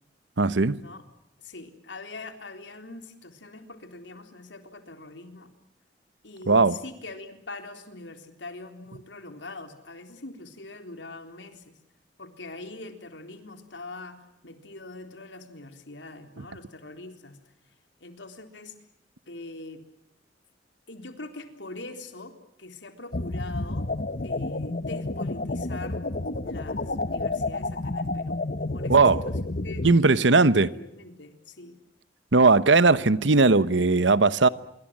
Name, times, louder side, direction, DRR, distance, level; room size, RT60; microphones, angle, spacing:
voice 1, 0.4-0.8 6.5-6.8 28.9-29.2 29.8-30.7 32.3-34.5, right 3 dB, 90° right, 1.1 m, -18 dB
voice 2, 1.4-5.5 6.2-11.8 12.2-17.4 18.0-18.8 19.3-19.8 20.9-23.9 24.2-26.0 26.4-28.4 28.7-31.8, left 2 dB, 85° left, 3.7 m, -43 dB
sound 1, 23.1-29.9, left 2 dB, 50° left, 1.1 m, -30 dB
26.5 x 24.0 x 7.5 m
head